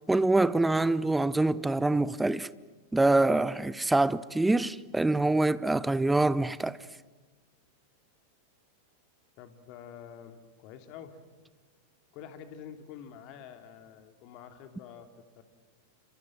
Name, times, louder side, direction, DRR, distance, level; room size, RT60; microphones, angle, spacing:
voice 1, 0.1-2.5 2.9-6.8, right 2 dB, 5° right, 0.8 m, -25 dB
voice 2, 9.4-11.2 12.1-15.4, left 8 dB, 40° left, 2.8 m, -47 dB
29.0 x 26.0 x 7.7 m
figure-of-eight pair, 90°, 0 cm